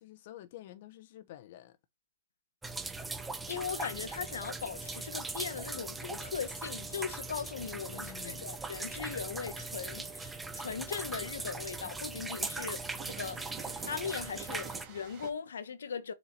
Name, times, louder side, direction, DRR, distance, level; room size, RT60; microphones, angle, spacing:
voice 1, 0.0-1.8 7.9-8.5, left 13 dB, 50° left, 0.8 m, -49 dB
sound 1, 2.6-14.9, right 3 dB, 5° right, 0.7 m, -40 dB
voice 2, 3.5-13.4 13.8-16.1, left 6 dB, 85° left, 1.1 m, -39 dB
Train, 7.3-15.3, right 8 dB, 25° right, 3.0 m, -52 dB
6.8 x 4.4 x 4.3 m
hypercardioid pair, 150°, 0 cm